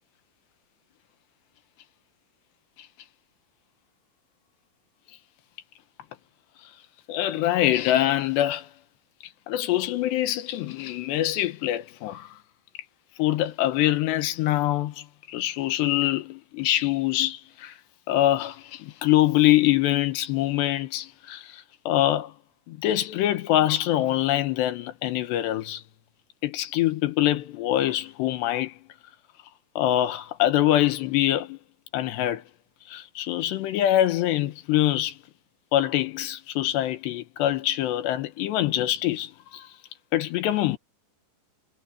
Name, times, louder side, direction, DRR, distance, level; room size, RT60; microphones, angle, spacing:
voice 1, 7.1-8.7 9.5-12.3 13.2-17.8 18.1-22.3 22.7-25.8 26.4-28.8 29.8-31.6 31.9-32.4 32.9-35.2 35.7-39.7 40.1-40.8, left 13 dB, 75° left, 3.3 m, -24 dB
omnidirectional pair, 5.1 m